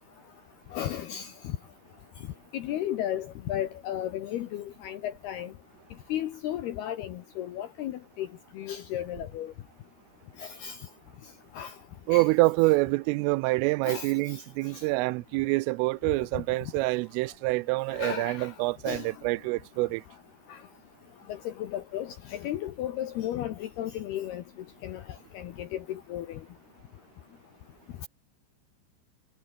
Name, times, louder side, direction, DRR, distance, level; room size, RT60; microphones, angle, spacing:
voice 1, 0.7-1.6 2.5-5.5 6.1-8.3 8.5-9.5 10.4-10.8 11.5-11.7 12.1-12.3 13.9-14.4 14.7-14.8 17.9-18.5 18.9-19.1 20.5-20.6 21.3-24.4 24.8-25.0 25.3-26.4, left 11 dB, 70° left, 2.7 m, -34 dB
voice 2, 12.1-20.0, right 23 dB, 85° right, 3.2 m, -26 dB
omnidirectional pair, 5.7 m